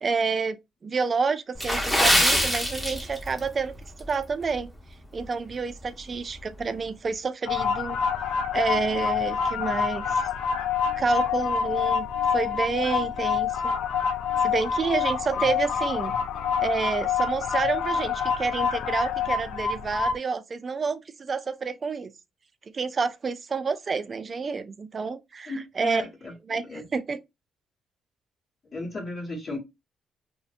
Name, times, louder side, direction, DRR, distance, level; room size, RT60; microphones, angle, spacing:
voice 1, 0.0-3.7 4.0-4.7 5.1-8.0 8.5-10.2 11.0-12.1 12.3-13.7 14.4-16.1 16.6-22.1 22.7-26.0 26.5-27.2, right 4 dB, 35° right, 0.3 m, -29 dB
Water / Splash splatter, 1.5-3.5 3.8-4.0 4.6-4.8 5.2-5.3, equal, 5° left, 0.7 m, -23 dB
sound 1, 7.5-20.1, left 7 dB, 85° left, 0.3 m, -27 dB
voice 2, 25.5-26.8 28.7-29.6, left 2 dB, 45° left, 1.0 m, -35 dB
2.6 x 2.1 x 2.4 m
cardioid pair, 105°, 0 cm